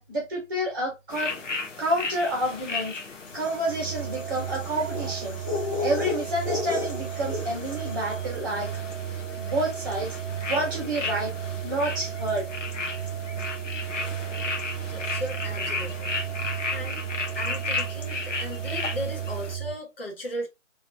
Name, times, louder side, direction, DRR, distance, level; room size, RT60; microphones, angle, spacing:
voice 1, 0.0-1.4 1.8-3.0 3.3-5.4 5.8-8.7 9.4-10.2 10.5-11.3 11.6-12.5, right 1 dB, 15° right, 1.4 m, -29 dB
sound 1, 1.1-19.5, left 4 dB, 70° left, 1.0 m, -35 dB
sound 2, 3.4-7.9, left 4 dB, 25° left, 0.8 m, -33 dB
sound 3, 3.7-19.8, right 10 dB, 65° right, 0.9 m, -34 dB
voice 2, 14.9-16.2 16.7-17.0 17.3-20.5, left 1 dB, 45° left, 1.3 m, -36 dB
3.2 x 2.8 x 3.4 m
hypercardioid pair, 170°, 38 cm